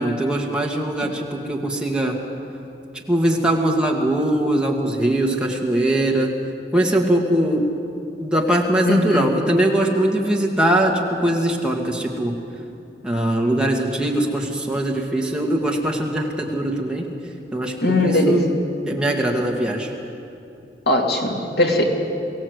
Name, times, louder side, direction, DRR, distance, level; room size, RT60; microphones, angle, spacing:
voice 1, 0.0-2.2 3.1-6.3 6.7-7.7 8.2-12.3 13.0-17.1 17.5-18.5 18.9-19.9, right 1 dB, 5° right, -1 dB, 2.0 m, -21 dB
voice 2, 8.8-9.3 17.8-18.4 20.9-21.8, left 1 dB, 65° left, 0 dB, 2.7 m, -19 dB
23.5 x 16.5 x 8.1 m, 2.7 s
head